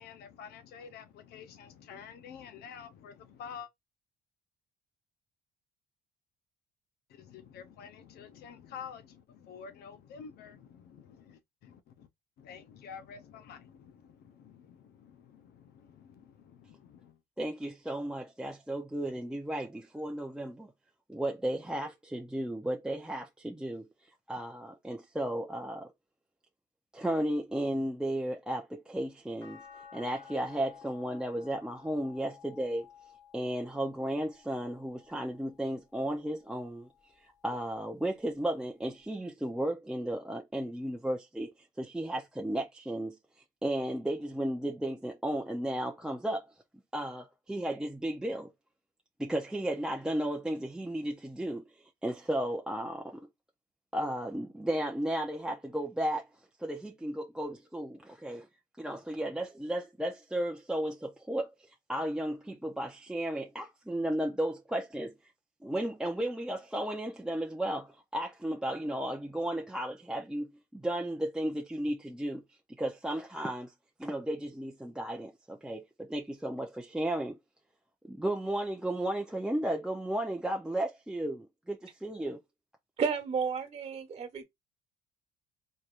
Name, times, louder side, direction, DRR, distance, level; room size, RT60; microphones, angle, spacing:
voice 1, 0.0-3.7 7.1-12.1 12.4-17.2, left 7 dB, 70° left, 0.7 m, -49 dB
voice 2, 17.4-20.7 21.1-23.9 24.3-25.9 26.9-32.9 33.3-36.9 37.2-41.5 41.8-43.2 43.6-46.5 46.9-48.5 49.2-53.3 53.9-56.3 56.6-58.5 58.8-65.2 65.6-72.4 72.8-73.7 74.0-77.4 78.0-82.4, right 1 dB, 5° right, 0.6 m, -34 dB
sound 1, 29.4-35.7 36.3-37.6 39.0-39.1, left 8 dB, 25° left, 1.5 m, -55 dB
voice 3, 83.0-84.4, right 6 dB, 40° right, 1.4 m, -32 dB
4.3 x 3.3 x 2.5 m
cardioid pair, 110°, 17 cm